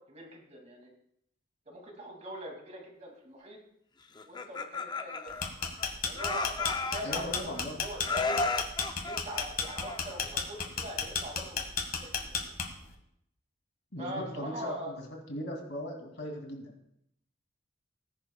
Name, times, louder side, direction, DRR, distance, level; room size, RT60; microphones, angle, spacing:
voice 1, 0.1-0.9 1.7-3.6 4.2-5.3 6.0-8.4 9.0-11.6 12.0-12.5 14.0-15.0, right 1 dB, 35° right, 1 dB, 2.4 m, -42 dB
Laughter, 4.2-5.9 6.2-7.6 8.0-10.3, left 3 dB, 20° left, 0.5 m, -34 dB
sound 1, 5.3-12.9, left 6 dB, 45° left, 1.6 m, -33 dB
voice 2, 7.0-7.8 13.9-14.9 15.3-16.7, equal, 65° left, 1 dB, 2.7 m, -38 dB
19.0 x 11.0 x 2.3 m, 0.75 s
head